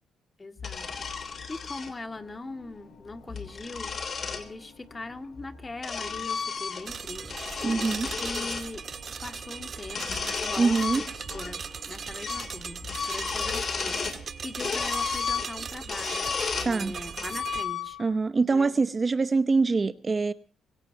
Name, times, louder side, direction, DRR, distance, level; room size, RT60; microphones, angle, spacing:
voice 1, 0.4-0.9 1.2-8.8 9.2-11.0 11.3-18.0 18.5-18.8, left 2 dB, 25° left, 8 dB, 2.1 m, -41 dB
sound 1, 0.6-1.9 3.1-4.5 5.4-7.0 7.3-8.7 9.8-11.5 11.8-11.9 12.2-12.5 12.8-14.2 14.6-16.8 17.2-18.1, left 5 dB, 45° left, 3.2 m, -33 dB
sound 2, 0.8-13.1, left 4 dB, 80° left, 6.0 m, -56 dB
sound 3, 6.9-17.6, right 6 dB, 45° right, 1.6 m, -38 dB
voice 2, 7.6-8.1 10.6-11.0 16.6-17.0 18.0-20.3, right 4 dB, 30° right, 13 dB, 0.9 m, -24 dB
25.0 x 16.5 x 2.9 m, 0.37 s
cardioid pair, 90°, 0 cm